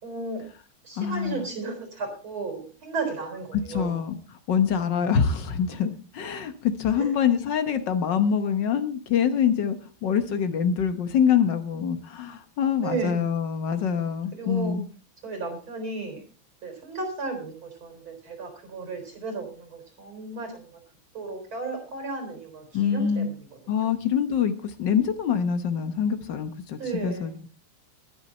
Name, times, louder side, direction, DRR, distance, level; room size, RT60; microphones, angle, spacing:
voice 1, 0.0-0.4 0.8-4.0 7.0-7.1 12.8-13.3 14.3-14.8 15.2-16.2 16.6-20.8 21.1-23.9 26.8-27.4, right 3 dB, 80° right, 5 dB, 5.0 m, -34 dB
voice 2, 1.0-1.4 3.7-4.2 4.5-9.8 10.0-14.8 22.7-23.3 23.7-24.5 24.8-27.3, left 7 dB, 65° left, 10 dB, 1.6 m, -25 dB
20.5 x 6.9 x 4.2 m, 0.37 s
omnidirectional pair, 2.3 m